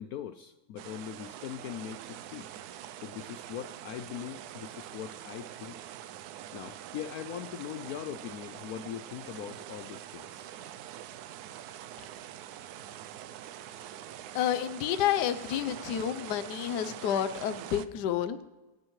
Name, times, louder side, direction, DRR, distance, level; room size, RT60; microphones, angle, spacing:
voice 1, 0.0-2.5 3.0-5.8 6.5-10.5, left 10 dB, 90° left, 10 dB, 0.8 m, -41 dB
sound 1, 0.8-17.9, right 11 dB, 80° right, 0.9 m, -44 dB
voice 2, 14.3-18.4, left 10 dB, 65° left, 11 dB, 1.2 m, -30 dB
24.0 x 10.0 x 3.1 m, 1.2 s
omnidirectional pair, 2.2 m